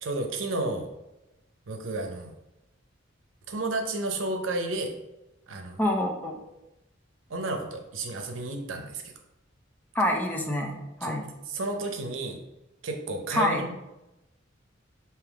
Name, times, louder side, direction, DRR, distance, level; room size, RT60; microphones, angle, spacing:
voice 1, 0.0-0.9 1.7-2.3 3.5-4.9 5.5-5.8 7.3-9.1 11.0-11.1 11.5-12.4 12.8-13.7, right 2 dB, 90° right, 4 dB, 0.7 m, -32 dB
voice 2, 5.8-6.3 9.9-11.2 13.3-13.6, left 1 dB, 10° left, 1 dB, 0.5 m, -26 dB
3.5 x 2.9 x 4.6 m, 0.94 s
head